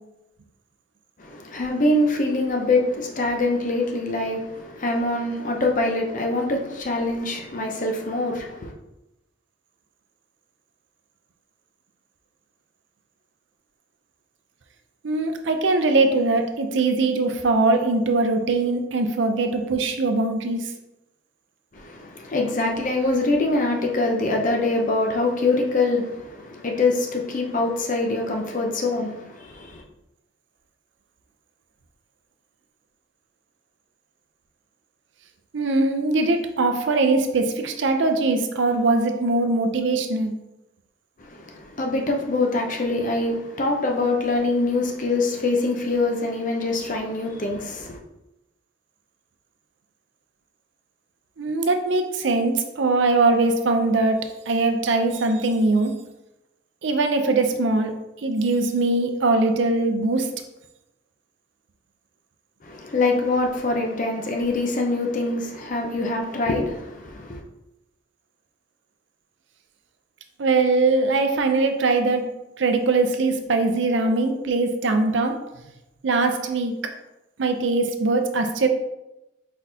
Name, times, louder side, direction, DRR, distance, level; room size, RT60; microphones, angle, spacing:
voice 1, 1.2-8.7 21.7-29.8 41.2-48.0 62.6-67.4, left 2 dB, 40° left, 0.7 m, -24 dB
voice 2, 15.0-20.7 35.5-40.3 51.4-54.2 54.5-55.9 56.8-57.9 58.2-60.3 70.4-75.4 76.0-76.8 77.4-78.7, right 3 dB, 65° right, 0.5 m, -21 dB
4.6 x 4.0 x 2.8 m
head